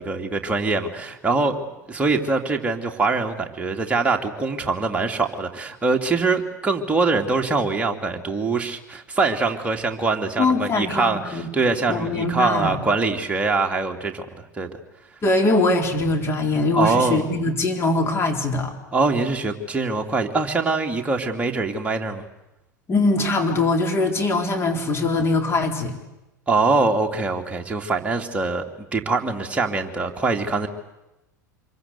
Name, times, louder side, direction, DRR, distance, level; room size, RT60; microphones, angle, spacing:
voice 1, 0.0-1.6 1.9-14.7 16.7-17.2 18.9-22.3 26.5-28.6 28.9-30.7, right 3 dB, 15° right, 2 dB, 2.8 m, -23 dB
voice 2, 10.4-11.5 11.9-12.8 15.2-18.7 22.9-26.0, left 2 dB, 25° left, 3 dB, 4.0 m, -22 dB
26.0 x 23.5 x 8.3 m, 0.95 s
figure-of-eight pair, 80°, 10 cm